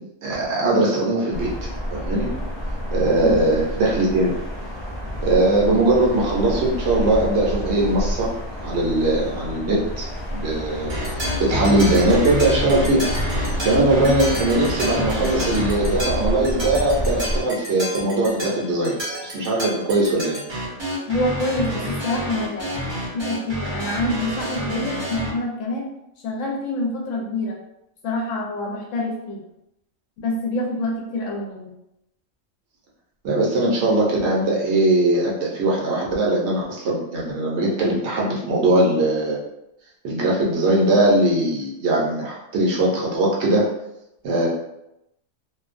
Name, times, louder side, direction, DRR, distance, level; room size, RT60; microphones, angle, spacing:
voice 1, 0.0-1.5 1.9-2.3 2.9-4.4 5.2-10.9 11.4-13.0 13.6-18.9 19.2-20.4 33.2-39.4 40.0-43.7 44.2-44.5, right 2 dB, 65° right, -4 dB, 0.8 m, -20 dB
sound 1, 1.3-17.4, equal, 45° left, 0.3 m, -29 dB
voice 2, 3.2-3.5 21.1-22.8 23.1-25.9 26.2-27.6 28.0-29.4 30.2-31.7, left 1 dB, 75° left, -1 dB, 0.9 m, -26 dB
sound 2, 10.7-16.3, left 4 dB, 20° left, 0.7 m, -30 dB
sound 3, 10.9-25.3, equal, 30° right, 0.5 m, -29 dB
2.5 x 2.1 x 2.4 m, 0.85 s
omnidirectional pair, 1.4 m